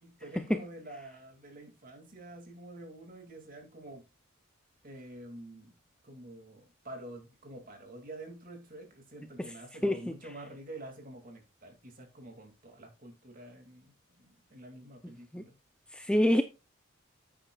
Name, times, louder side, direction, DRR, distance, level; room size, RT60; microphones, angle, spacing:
voice 1, 0.0-4.1 4.8-5.7 6.0-15.5, right 1 dB, 40° right, 2.4 m, -48 dB
voice 2, 15.9-16.4, left 1 dB, 5° left, 0.5 m, -25 dB
9.7 x 8.9 x 2.4 m
head